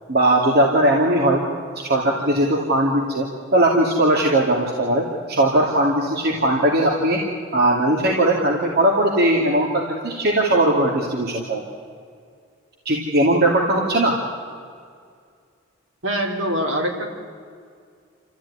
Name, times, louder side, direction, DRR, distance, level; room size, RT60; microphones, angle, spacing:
voice 1, 0.1-1.4 1.7-3.3 3.5-7.2 7.5-11.6 12.8-14.2, right 1 dB, 50° right, -1 dB, 2.6 m, -19 dB
voice 2, 16.0-17.1, equal, 65° right, 1 dB, 4.2 m, -23 dB
28.5 x 14.5 x 9.9 m, 2.2 s
head